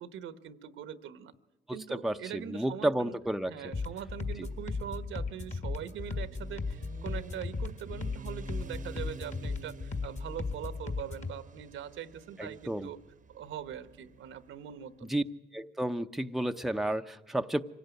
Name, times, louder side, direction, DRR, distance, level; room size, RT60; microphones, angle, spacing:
voice 1, 0.0-1.3 1.7-3.2 3.5-13.0 13.3-15.2, right 9 dB, 80° right, 1.2 m, -42 dB
voice 2, 1.7-3.5 12.4-12.9 15.1-15.2 15.5-17.6, right 1 dB, ahead, 0.7 m, -31 dB
Motorcycle, 3.2-14.9, right 5 dB, 40° right, 0.9 m, -51 dB
sound 1, 3.7-11.3, left 4 dB, 35° left, 1.8 m, -36 dB
25.0 x 17.0 x 9.3 m
cardioid pair, 90°, 20 cm